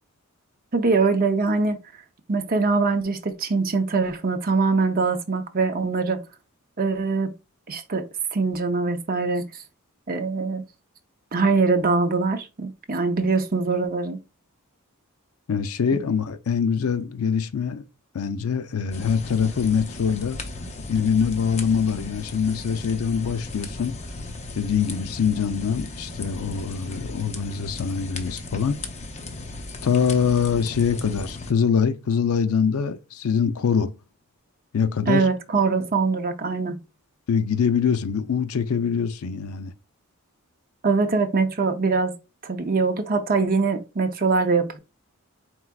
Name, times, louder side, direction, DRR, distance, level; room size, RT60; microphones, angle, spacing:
voice 1, 0.7-1.8 2.3-6.2 6.8-7.3 7.7-8.0 8.3-9.4 10.1-10.6 11.3-14.2 15.9-16.0 35.1-36.8 40.8-42.1 42.4-44.8, right 4 dB, 40° right, 0.7 m, -23 dB
voice 2, 15.5-17.8 18.1-20.4 20.9-24.0 24.6-28.8 29.8-33.9 34.7-35.3 37.3-39.7, left 6 dB, 75° left, 0.5 m, -24 dB
sound 1, 18.9-31.5, left 2 dB, 30° left, 0.6 m, -36 dB
4.6 x 3.9 x 2.3 m
head